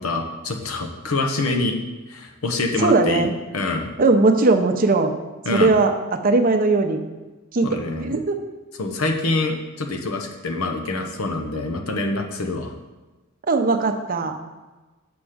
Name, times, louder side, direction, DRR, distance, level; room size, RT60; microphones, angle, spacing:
voice 1, 0.0-1.8 2.1-3.9 5.4-5.7 7.6-8.2 8.8-12.7, left 2 dB, 85° left, 4 dB, 0.9 m, -25 dB
voice 2, 2.8-3.3 4.0-5.1 5.5-7.0 7.5-8.4 13.5-14.3, right 3 dB, 45° right, 5 dB, 0.7 m, -19 dB
6.2 x 5.8 x 5.0 m, 1.2 s
head